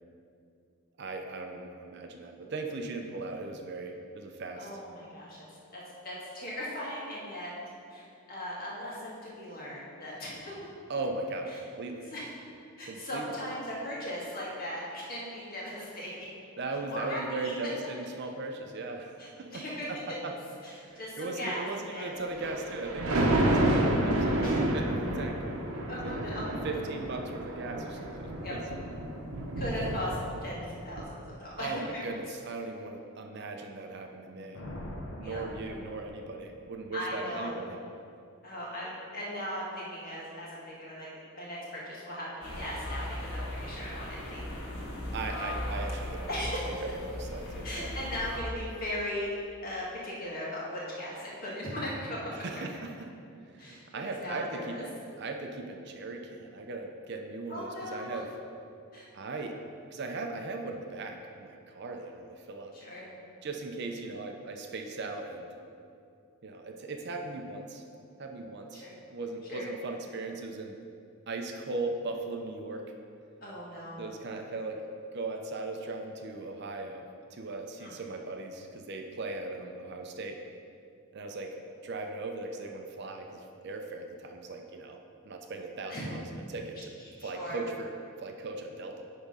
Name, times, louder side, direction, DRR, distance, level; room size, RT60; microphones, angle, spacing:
voice 1, 1.0-4.7 10.9-12.1 12.9-13.4 16.6-19.6 19.9-20.3 20.8-25.4 25.9-26.1 26.6-28.6 31.6-34.6 35.2-37.8 45.1-46.3 46.8-47.9 52.3-53.1 53.5-54.9 55.2-58.3 59.1-59.6 59.9-62.7 63.4-65.5 66.4-67.8 68.2-70.8 71.3-72.8 74.0-74.8 75.1-77.1 77.3-80.4 81.1-81.6 81.8-85.0 85.2-86.9 87.2-87.9 88.2-89.0, right 3 dB, 50° right, 3 dB, 0.5 m, -38 dB
voice 2, 4.6-5.4 5.7-7.5 7.9-10.5 12.1-12.3 12.8-16.3 16.9-17.5 19.2-19.9 20.6-22.1 24.4-24.6 25.9-26.4 28.4-28.5 29.6-32.0 35.2-35.4 36.9-37.5 38.4-41.1 41.3-44.5 45.2-45.4 46.3-46.8 47.6-49.3 49.6-52.2 53.6-54.8 57.5-58.2 58.9-59.1 62.7-63.0 68.7-68.9 69.5-69.7 73.4-74.1 77.8-77.9 85.9-86.1 87.2-87.6, equal, 40° left, -6 dB, 1.8 m, -38 dB
Thunder, 22.3-30.6 31.0-31.1, right 1 dB, 80° right, 0.9 m, -30 dB
Thunder 2, 34.5-36.7, left 1 dB, 65° left, 0.9 m, -43 dB
sound 1, 42.4-48.4, left 1 dB, 85° left, 1.4 m, -38 dB
9.5 x 3.6 x 5.2 m, 2.5 s
head